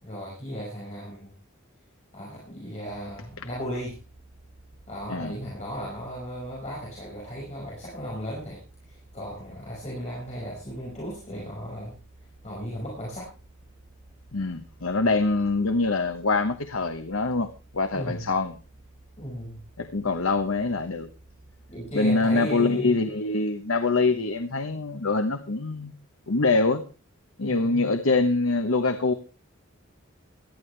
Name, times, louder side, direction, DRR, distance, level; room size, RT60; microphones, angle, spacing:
voice 1, 0.0-1.4 2.1-4.0 4.9-12.0 12.4-13.3 17.9-18.3 19.2-19.6 21.7-23.1 27.4-27.9, equal, 35° left, -4 dB, 5.7 m, -36 dB
sound 1, 2.9-22.0, right 2 dB, 60° right, 4.6 m, -53 dB
voice 2, 14.3-17.5 17.7-18.6 19.8-21.1 21.9-25.9 26.3-26.8 27.4-29.1, left 3 dB, 80° left, 8 dB, 1.1 m, -24 dB
18.0 x 13.0 x 3.4 m, 0.32 s
head